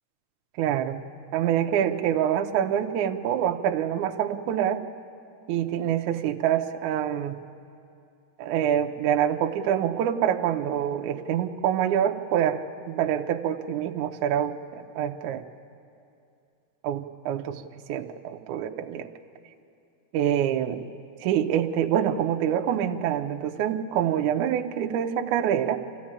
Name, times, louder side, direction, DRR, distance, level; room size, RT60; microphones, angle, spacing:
voice 1, 0.6-1.0 1.3-4.8 5.5-7.4 8.4-15.4 16.8-17.6 17.9-19.1 20.1-20.8 21.2-25.8, right 10 dB, 85° right, 5 dB, 1.7 m, -26 dB
24.5 x 14.5 x 8.7 m, 2.6 s
omnidirectional pair, 4.6 m